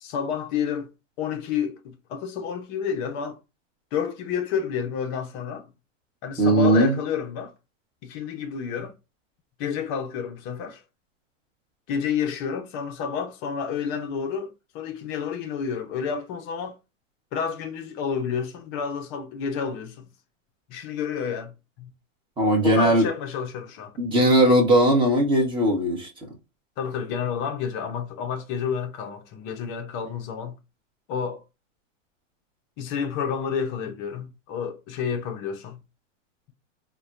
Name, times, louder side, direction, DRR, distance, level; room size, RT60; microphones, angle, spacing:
voice 1, 0.0-0.9 1.2-3.4 3.9-5.7 6.2-7.5 8.0-8.9 9.6-10.8 11.9-16.8 17.3-20.1 20.7-21.9 22.6-23.9 26.8-30.6 31.1-31.4 32.8-35.8, left 7 dB, 30° left, 0.5 m, -30 dB
voice 2, 6.4-7.0 22.4-23.1 24.0-26.1, right 1 dB, 10° right, 0.9 m, -19 dB
3.9 x 2.1 x 2.3 m
supercardioid pair, 145°, 38 cm